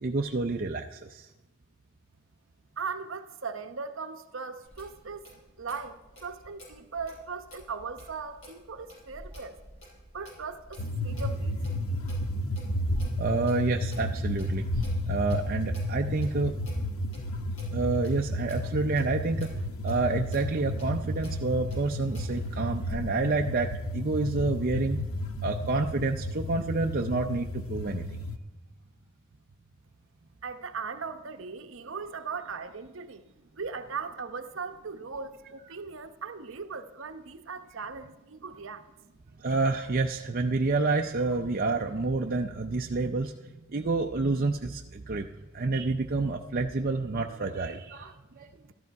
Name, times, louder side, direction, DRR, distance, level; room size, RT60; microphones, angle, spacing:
voice 1, 0.0-1.3 13.2-16.6 17.7-19.5 19.8-25.0 25.4-28.1 39.4-43.3 43.7-45.3 45.5-48.5, right 3 dB, 45° right, 2 dB, 0.5 m, -28 dB
voice 2, 2.8-5.3 5.6-9.6 10.1-11.6 30.4-33.2 33.6-38.8, right 5 dB, 65° right, 8 dB, 0.9 m, -38 dB
Clock, 4.6-22.4, equal, 60° left, 5.9 m, -53 dB
sound 1, 10.8-28.4, left 1 dB, 80° left, 0.8 m, -32 dB
13.5 x 13.0 x 4.7 m, 1.1 s
head